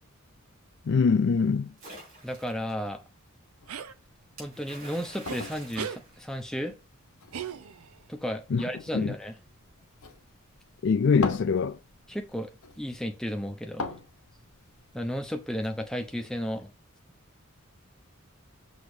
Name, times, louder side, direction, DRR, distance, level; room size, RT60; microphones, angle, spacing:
voice 1, 0.9-1.7 8.5-8.6 8.9-9.1 10.8-11.8, left 5 dB, 55° left, 0.4 m, -23 dB
Splash splatter, 1.8-2.7 4.4-6.8, right 2 dB, 40° right, 3.5 m, -47 dB
voice 2, 2.2-3.0 4.4-6.7 8.1-9.4 12.1-12.5 12.8-14.0 14.9-16.7, equal, 5° left, 0.7 m, -33 dB
sound 1, 3.6-16.5, left 3 dB, 85° left, 0.9 m, -44 dB
sound 2, 3.7-3.9 5.3-5.4 5.7-6.0 7.3-8.0, right 7 dB, 85° right, 0.5 m, -36 dB
6.2 x 3.0 x 5.0 m
head